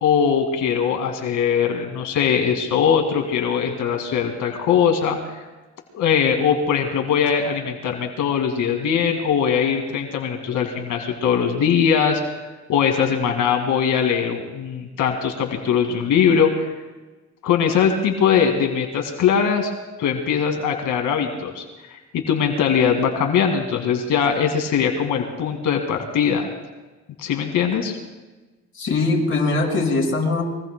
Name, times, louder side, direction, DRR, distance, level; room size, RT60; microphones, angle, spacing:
voice 1, 0.0-5.2 5.9-12.4 12.7-16.7 17.4-19.7 20.0-21.6 21.9-26.5 27.2-27.9, left 7 dB, 85° left, 3 dB, 2.1 m, -21 dB
voice 2, 28.8-30.4, left 3 dB, 45° left, -1 dB, 5.5 m, -21 dB
24.5 x 23.0 x 2.2 m, 1.2 s
cardioid pair, 90°, 30 cm